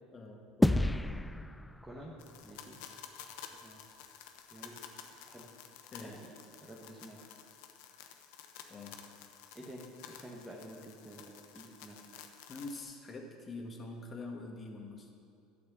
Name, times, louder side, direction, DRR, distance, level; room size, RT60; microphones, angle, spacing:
voice 1, 0.1-1.0 5.9-6.2 8.7-9.0 12.5-15.1, left 2 dB, 30° left, 2 dB, 1.8 m, -45 dB
sound 1, 0.6-3.2, left 1 dB, 10° left, 0.3 m, -32 dB
voice 2, 1.8-2.1 2.4-2.8 3.5-3.8 4.5-4.7 5.1-5.5 6.0-6.3 6.6-7.3 9.5-12.0, right 1 dB, 10° right, -4 dB, 1.7 m, -50 dB
sound 2, 2.2-12.8, left 8 dB, 70° left, 0.9 m, -52 dB
11.5 x 6.5 x 7.1 m, 2.5 s
hypercardioid pair, 85°, 0 cm